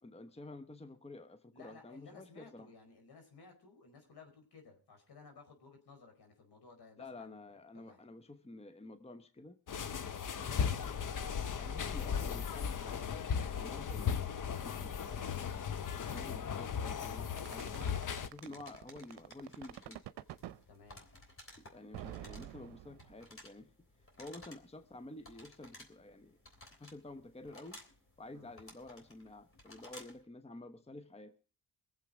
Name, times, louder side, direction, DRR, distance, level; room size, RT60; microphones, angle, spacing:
voice 1, 0.0-2.7 7.0-9.6 10.4-11.2 11.6-15.7 16.1-17.9 18.2-20.0 21.6-23.7 24.2-26.4 26.8-27.8 28.2-31.3, left 2 dB, 15° left, 10 dB, 1.1 m, -51 dB
voice 2, 1.5-8.0 18.4-18.6 20.7-21.0 28.3-28.5, left 4 dB, 70° left, 4 dB, 4.6 m, -57 dB
sound 1, 9.7-18.3, left 7 dB, 50° left, 0.9 m, -37 dB
sound 2, 17.4-20.6 21.9-23.3, right 13 dB, 80° right, 0.7 m, -47 dB
sound 3, 18.1-30.3, left 1 dB, 30° left, 3.5 m, -57 dB
22.0 x 7.6 x 5.0 m, 0.38 s
cardioid pair, 70°, 40 cm